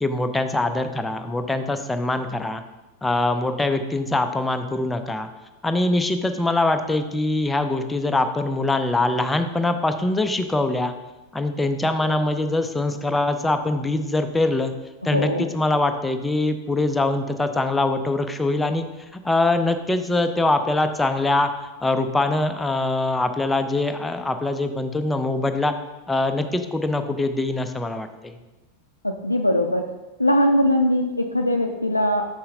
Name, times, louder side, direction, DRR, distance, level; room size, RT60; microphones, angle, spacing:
voice 1, 0.0-2.6 3.0-5.3 5.6-10.9 11.3-14.7 15.0-18.9 19.1-21.5 21.8-25.7 26.1-28.3, left 2 dB, 10° left, 7 dB, 0.4 m, -23 dB
voice 2, 15.1-15.4 29.0-29.8 30.2-32.3, left 1 dB, 85° left, 3 dB, 0.3 m, -21 dB
6.4 x 5.6 x 2.7 m, 1.1 s
figure-of-eight pair, 90°, 0 cm